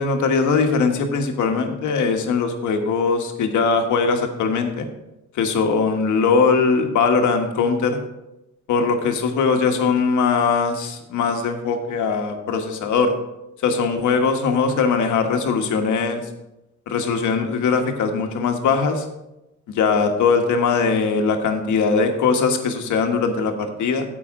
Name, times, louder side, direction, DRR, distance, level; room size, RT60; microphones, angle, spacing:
voice 1, 0.0-4.9 5.3-8.0 8.7-13.1 13.6-16.2 16.9-19.0 19.7-24.0, left 5 dB, 75° left, 5 dB, 1.4 m, -20 dB
9.8 x 8.4 x 3.7 m, 0.92 s
cardioid pair, 90°, 30 cm